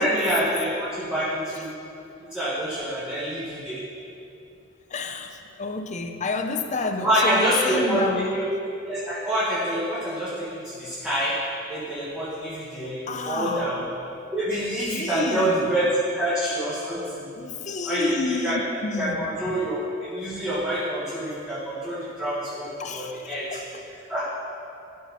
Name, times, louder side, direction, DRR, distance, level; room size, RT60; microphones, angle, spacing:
voice 1, 0.0-1.7 2.3-3.8 7.0-8.4 8.8-11.4 11.7-13.8 14.3-17.2 17.8-18.6 19.0-23.6 24.1-24.3, right 1 dB, 5° right, -11 dB, 1.4 m, -26 dB
voice 2, 4.9-8.4 13.1-13.7 14.9-15.6 17.3-19.6 22.8-23.8, left 3 dB, 40° left, 7 dB, 0.5 m, -30 dB
12.5 x 4.7 x 5.6 m, 2.7 s
head